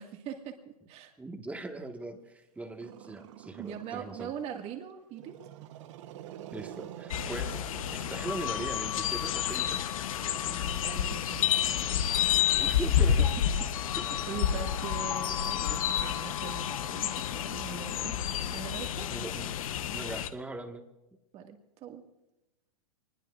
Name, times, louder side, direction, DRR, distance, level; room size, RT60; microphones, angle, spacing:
voice 1, 0.0-1.1 3.6-5.4 10.2-12.0 14.3-18.2 18.5-19.1 21.3-22.0, right 7 dB, 35° right, 4 dB, 2.1 m, -42 dB
voice 2, 1.2-4.3 6.5-7.6 7.9-9.8 12.4-13.3 14.0-14.3 19.1-19.5 19.9-20.8, right 2 dB, 5° right, 4 dB, 1.7 m, -40 dB
Growling, 2.8-4.5 5.1-9.3 10.2-16.8, right 11 dB, 55° right, 1.1 m, -49 dB
sound 1, 7.1-20.3, left 9 dB, 65° left, 1.0 m, -30 dB
25.0 x 21.0 x 2.6 m, 0.94 s
hypercardioid pair, 125°, 19 cm